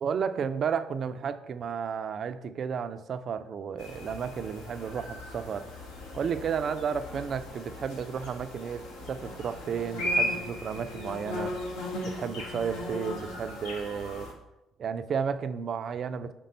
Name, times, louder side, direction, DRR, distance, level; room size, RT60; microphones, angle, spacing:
voice 1, 0.0-5.7 6.1-11.5 12.1-14.3 14.8-16.3, right 7 dB, 50° right, 11 dB, 0.4 m, -32 dB
sound 1, 3.8-14.3, left 1 dB, 75° left, 1.2 m, -36 dB
5.2 x 3.7 x 5.4 m, 0.92 s
figure-of-eight pair, 50°, 0 cm